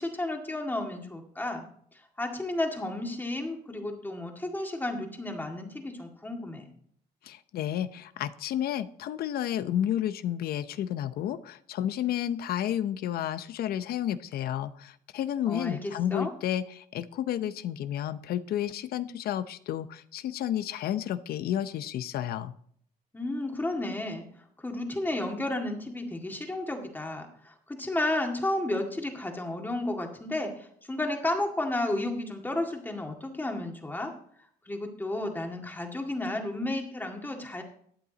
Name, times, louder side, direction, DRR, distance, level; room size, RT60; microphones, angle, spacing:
voice 1, 0.0-1.6 2.2-6.7 15.5-16.3 23.1-24.3 24.6-34.1 34.7-37.6, left 1 dB, 10° left, 3 dB, 1.9 m, -32 dB
voice 2, 7.2-22.5, left 11 dB, 65° left, 14 dB, 0.7 m, -31 dB
12.5 x 8.5 x 4.0 m, 0.63 s
cardioid pair, 110°, 17 cm